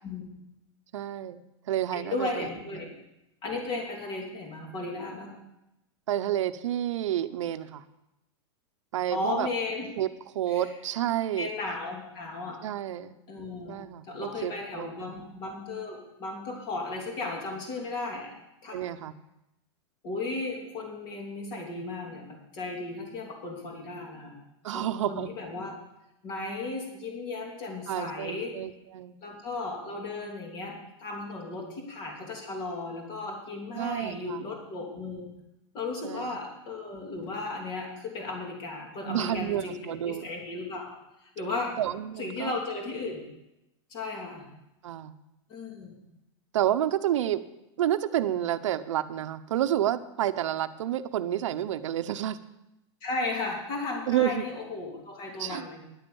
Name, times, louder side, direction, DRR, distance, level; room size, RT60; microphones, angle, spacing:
voice 1, 0.9-1.4 1.7-2.5 6.1-7.8 8.9-9.5 10.0-10.1 10.3-11.5 12.6-13.1 13.7-15.2 18.7-19.1 24.6-25.3 27.9-29.1 33.7-34.4 36.0-36.4 39.0-40.3 41.8-42.5 44.8-45.1 46.5-47.4 47.8-52.4 54.1-54.4 55.4-55.7, right 11 dB, 85° right, 11 dB, 0.8 m, -29 dB
voice 2, 1.9-2.9 3.4-5.3 9.1-9.9 10.5-10.6 11.4-12.6 13.3-18.4 18.6-18.9 20.0-24.4 24.7-25.8 26.2-28.6 29.2-35.3 35.7-40.9 41.2-41.8 42.2-43.2 43.9-44.5 45.5-46.0 53.0-55.8, left 3 dB, 30° left, 0 dB, 3.0 m, -35 dB
11.0 x 9.1 x 7.0 m, 0.89 s
supercardioid pair, 165°, 15 cm